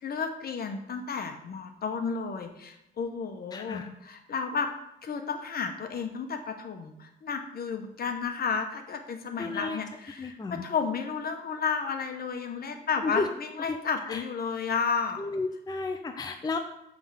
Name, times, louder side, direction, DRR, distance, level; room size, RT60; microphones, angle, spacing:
voice 1, 0.0-4.7 5.0-15.2, left 5 dB, 50° left, 6 dB, 1.0 m, -32 dB
voice 2, 3.5-3.9 9.4-9.8 10.2-10.6 13.0-13.3 13.7-13.8 14.1-14.2 15.2-16.6, left 3 dB, 20° left, 5 dB, 0.5 m, -32 dB
7.1 x 3.5 x 5.7 m, 0.84 s
cardioid pair, 90°, 20 cm